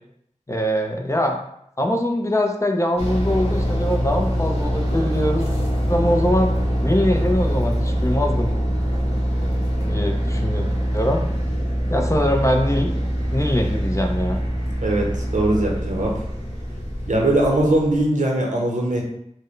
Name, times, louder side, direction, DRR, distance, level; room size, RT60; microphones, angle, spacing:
voice 1, 0.5-1.4 1.8-5.5 5.9-6.5 6.8-8.5 9.8-10.7 10.9-11.2 11.9-12.9 13.3-14.4, equal, 25° left, 2 dB, 0.5 m, -22 dB
sound 1, 3.0-18.0, equal, 55° left, 1.2 m, -24 dB
voice 2, 14.8-16.1 17.0-19.0, right 1 dB, 80° right, -1 dB, 0.8 m, -20 dB
4.2 x 2.1 x 3.2 m, 0.73 s
wide cardioid pair, 40°, 13 cm